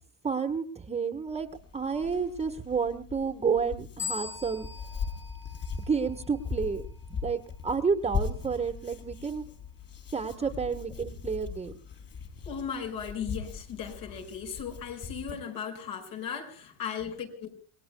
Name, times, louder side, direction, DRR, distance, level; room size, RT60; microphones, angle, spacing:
voice 1, 0.2-1.5 1.7-4.7 5.9-6.8 7.1-9.4 10.1-11.7, right 5 dB, 15° right, 1.4 m, -30 dB
Hands, 1.3-15.3, left 6 dB, 35° left, 4.8 m, -40 dB
sound 1, 4.0-6.5, left 5 dB, 5° left, 1.6 m, -40 dB
voice 2, 12.5-17.5, left 7 dB, 60° left, 5.7 m, -37 dB
28.0 x 21.0 x 2.3 m
supercardioid pair, 120°, 41 cm